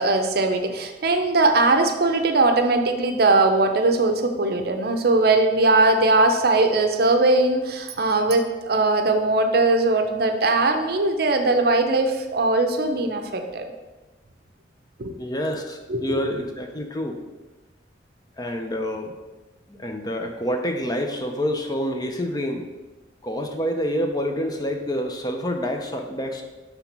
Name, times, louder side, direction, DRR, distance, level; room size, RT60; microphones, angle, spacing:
voice 1, 0.0-13.7 15.0-15.1 15.9-16.1, right 2 dB, 55° right, 6 dB, 0.6 m, -20 dB
voice 2, 15.1-17.2 18.4-19.1 19.7-22.6 23.2-26.4, equal, 20° left, 3 dB, 0.6 m, -27 dB
5.9 x 3.4 x 5.9 m, 1.1 s
head